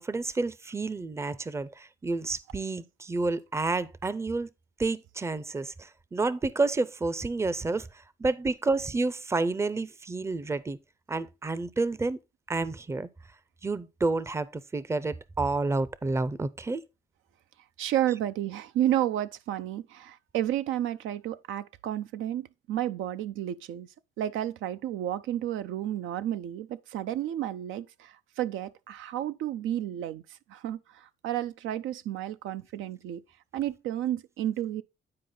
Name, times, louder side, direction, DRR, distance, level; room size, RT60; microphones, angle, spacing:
voice 1, 0.0-4.5 4.8-7.9 8.2-10.8 11.1-12.2 12.5-13.1 13.6-16.8, right 3 dB, 15° right, 0.5 m, -29 dB
voice 2, 17.8-23.9 24.2-30.2 30.5-33.2 33.5-34.8, right 12 dB, 85° right, 0.5 m, -31 dB
9.6 x 4.7 x 3.8 m
cardioid pair, 90°, 20 cm